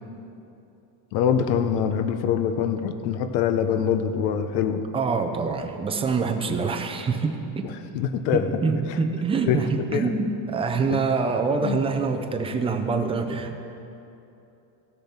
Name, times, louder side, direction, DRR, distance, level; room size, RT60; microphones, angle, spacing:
voice 1, 1.1-4.8 7.9-8.5 9.5-9.6 9.9-10.1 10.9-11.0 11.6-11.8, left 8 dB, 85° left, 9 dB, 0.8 m, -24 dB
voice 2, 4.9-7.6 8.3-13.6, right 4 dB, 15° right, 5 dB, 0.4 m, -25 dB
16.5 x 6.8 x 4.3 m, 2.8 s
cardioid pair, 150°, 48 cm